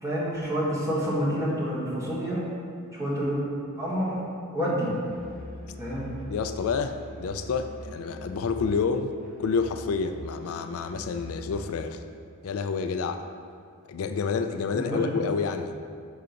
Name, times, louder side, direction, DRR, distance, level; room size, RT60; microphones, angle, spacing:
voice 1, 0.0-2.4 2.9-3.4 3.8-4.2 4.5-4.9 5.8-6.1 14.7-15.1, equal, 15° right, -7 dB, 1.4 m, -28 dB
Musical instrument, 5.0-11.9, equal, 45° right, 0.8 m, -42 dB
voice 2, 6.3-9.1 9.4-12.0 12.4-13.2 13.8-15.7, left 5 dB, 80° left, 7 dB, 0.4 m, -29 dB
5.0 x 3.8 x 5.8 m, 2.2 s
head